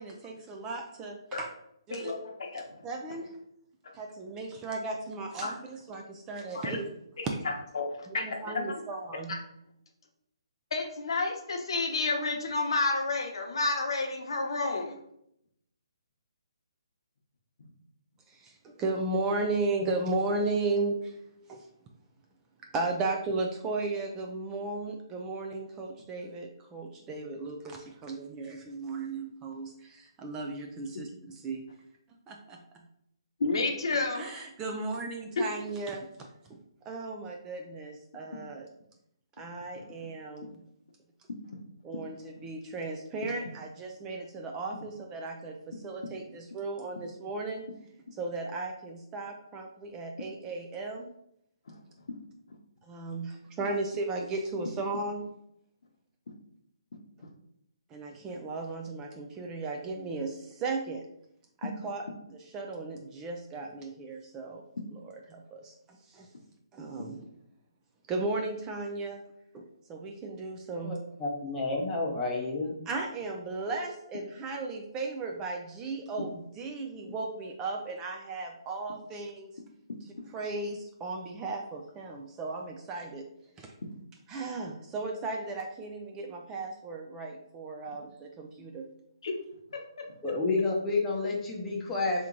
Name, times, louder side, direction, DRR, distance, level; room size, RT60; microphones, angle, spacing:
voice 1, 0.0-1.5 1.9-2.1 2.5-3.3 3.9-6.9 7.2-7.3 8.1-9.4 18.3-21.2 21.5-21.7 22.7-31.6 32.3-32.9 34.1-36.6 36.9-38.7 39.4-40.6 41.8-47.6 48.1-51.1 52.8-55.2 57.9-61.1 61.6-64.6 64.9-66.3 66.7-67.2 68.1-69.2 69.5-71.0 72.9-79.5 80.3-83.3 83.6-83.7 84.3-88.9, right 3 dB, 15° right, 2 dB, 0.4 m, -35 dB
voice 2, 1.9-2.8 5.4-5.5 6.5-6.8 7.2-8.7 10.7-15.0 33.4-34.3 39.7-39.8 51.7-51.8 89.2-89.3 89.7-89.8 90.2-90.3, left 3 dB, 65° left, 2 dB, 0.9 m, -31 dB
voice 3, 70.8-72.8 90.2-92.3, left 3 dB, 10° left, -3 dB, 0.7 m, -30 dB
3.5 x 3.0 x 3.8 m, 0.75 s
hypercardioid pair, 160°, 3 cm